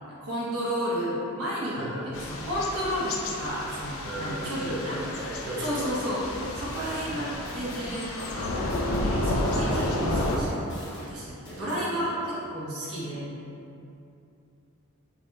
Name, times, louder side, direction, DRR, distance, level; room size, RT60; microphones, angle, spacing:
voice 1, 0.1-1.9 2.2-5.0 5.6-6.3 6.5-13.3, equal, 85° right, -8 dB, 0.8 m, -32 dB
voice 2, 1.6-2.1 4.1-6.0 6.9-7.5 9.7-10.1 11.4-11.9 12.1-12.4, right 1 dB, 55° right, -4 dB, 0.5 m, -37 dB
Thunder / Rain, 2.1-10.4, left 1 dB, 70° left, 0.4 m, -31 dB
sound 1, 6.2-9.1 9.5-11.8, equal, 55° left, 1.1 m, -42 dB
4.8 x 2.7 x 2.2 m, 2.7 s
head